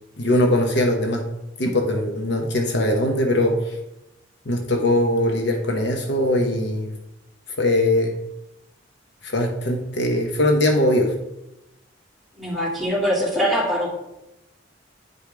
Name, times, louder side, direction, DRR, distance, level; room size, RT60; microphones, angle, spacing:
voice 1, 0.2-1.2 1.6-3.8 4.5-6.9 7.6-8.1 9.2-11.1, left 1 dB, 65° left, 2 dB, 1.0 m, -21 dB
voice 2, 12.4-13.9, equal, ahead, -6 dB, 2.3 m, -23 dB
9.5 x 4.9 x 3.5 m, 0.90 s
head